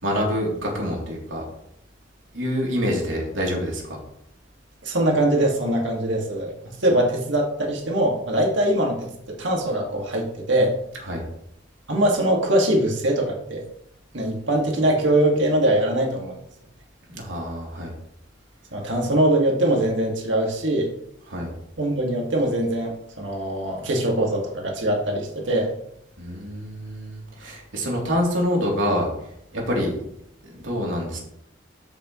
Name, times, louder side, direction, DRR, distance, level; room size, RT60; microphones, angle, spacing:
voice 1, 0.0-1.4 2.3-4.0 11.0-11.2 17.1-17.9 21.3-21.5 26.2-29.1 29.5-30.0 30.4-31.2, equal, 90° right, -2 dB, 3.3 m, -26 dB
voice 2, 4.8-6.6 6.8-10.8 11.9-13.6 14.1-16.4 18.7-20.9 21.8-25.7, right 1 dB, 70° right, -1 dB, 2.2 m, -22 dB
13.5 x 6.6 x 3.2 m, 0.75 s
head